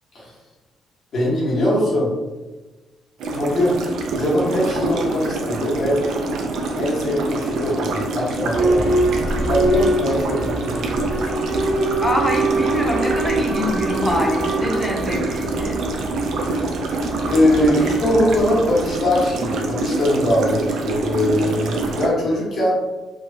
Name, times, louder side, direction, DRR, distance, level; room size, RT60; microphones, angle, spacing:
voice 1, 1.1-2.1 3.3-3.8 4.1-6.0 6.7-8.9 9.4-10.9 16.3-16.9 17.3-22.7, left 1 dB, 65° left, -6 dB, 1.3 m, -21 dB
sound 1, 3.2-22.1, right 2 dB, 80° right, 0.4 m, -25 dB
Boat Water vehicle / Alarm, 8.5-19.2, right 2 dB, 35° right, 0.8 m, -24 dB
voice 2, 12.0-15.8, left 1 dB, 10° left, -1 dB, 0.7 m, -24 dB
3.0 x 2.2 x 2.7 m, 1.2 s
cardioid pair, 90°, 0 cm